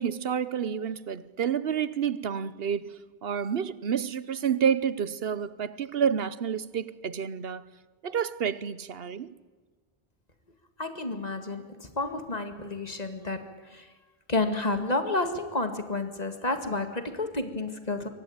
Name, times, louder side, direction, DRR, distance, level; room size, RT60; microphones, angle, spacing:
voice 1, 0.0-3.0 3.2-7.6 8.0-9.3, right 7 dB, 65° right, 1.1 m, -29 dB
voice 2, 10.8-13.9 14.3-18.1, left 2 dB, 40° left, 2.2 m, -30 dB
24.5 x 18.5 x 8.8 m
omnidirectional pair, 1.1 m